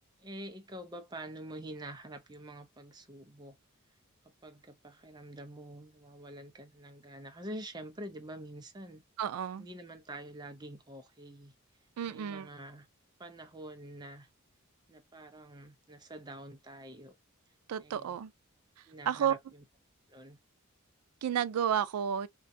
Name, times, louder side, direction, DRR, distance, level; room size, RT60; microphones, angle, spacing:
voice 1, 0.2-3.6 4.4-9.0 9.6-11.5 12.1-12.9 13.2-14.3 14.9-17.1 17.8-18.2 18.9-19.6 20.1-20.4, right 1 dB, 20° right, 0.4 m, -46 dB
voice 2, 9.2-9.6 12.0-12.5 17.7-18.3 19.1-19.3 21.2-22.3, right 9 dB, 90° right, 0.3 m, -31 dB
2.5 x 2.3 x 2.5 m
head